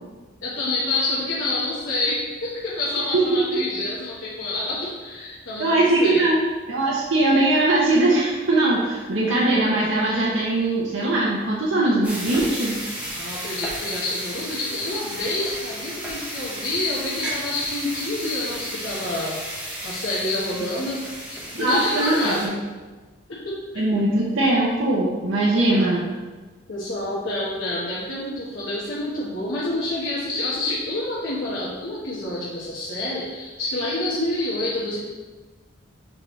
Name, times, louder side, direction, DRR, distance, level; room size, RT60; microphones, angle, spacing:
voice 1, 0.4-6.3 13.1-19.4 19.8-21.0 21.3-22.5 23.3-23.8 25.7-26.0 26.7-35.0, left 2 dB, 80° left, -7 dB, 1.2 m, -28 dB
voice 2, 5.6-6.4 6.7-12.8 21.5-22.5 23.8-26.1, right 2 dB, 80° right, -5 dB, 0.8 m, -20 dB
sound 1, 12.0-22.5, equal, 5° right, 1.2 m, -33 dB
6.3 x 4.7 x 3.1 m, 1.3 s
head